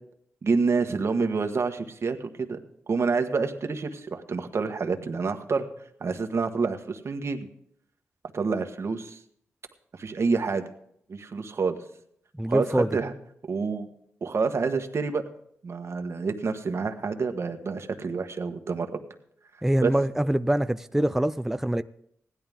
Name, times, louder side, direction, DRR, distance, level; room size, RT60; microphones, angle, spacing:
voice 1, 0.4-2.6 2.9-5.7 6.0-7.5 8.3-9.2 9.9-10.7 11.1-11.8 12.5-13.1 13.5-13.9 14.2-15.2 15.6-18.9 19.8-19.9, right 4 dB, 60° right, 1.3 m, -28 dB
voice 2, 12.4-12.9 19.6-21.8, right 1 dB, 5° right, 0.4 m, -24 dB
16.0 x 11.0 x 3.6 m
cardioid pair, 60°, 5 cm